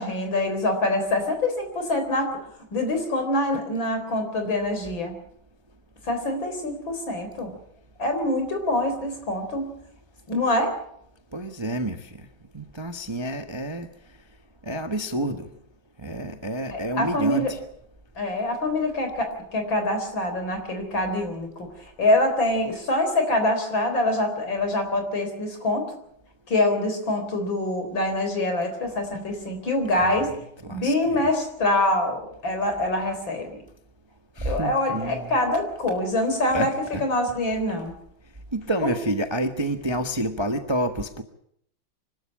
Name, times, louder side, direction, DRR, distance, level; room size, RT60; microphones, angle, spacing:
voice 1, 0.0-2.4 2.7-5.1 6.1-7.5 8.0-9.7 10.3-10.7 16.7-17.5 18.2-21.5 22.0-25.9 26.5-30.3 30.6-33.6 34.4-36.7 37.0-37.9, left 1 dB, 70° left, 6 dB, 4.6 m, -25 dB
voice 2, 11.3-12.1 12.5-13.9 14.7-15.5 16.0-17.6 30.0-30.2 30.6-31.2 34.4-35.3 36.5-37.0 38.5-41.2, right 1 dB, 20° right, 7 dB, 0.9 m, -29 dB
25.0 x 12.5 x 8.7 m, 0.71 s
omnidirectional pair, 2.2 m